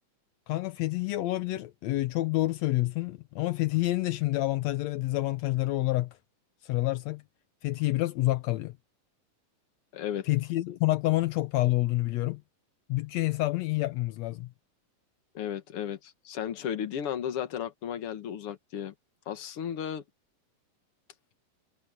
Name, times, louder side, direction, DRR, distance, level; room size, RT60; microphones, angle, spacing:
voice 1, 0.5-6.1 6.6-7.2 7.6-8.7 10.3-12.4 12.9-14.5, left 17 dB, 80° left, 1.6 m, -28 dB
voice 2, 9.9-10.3 15.3-18.9 19.3-20.0, left 9 dB, 50° left, 1.9 m, -34 dB
omnidirectional pair, 3.9 m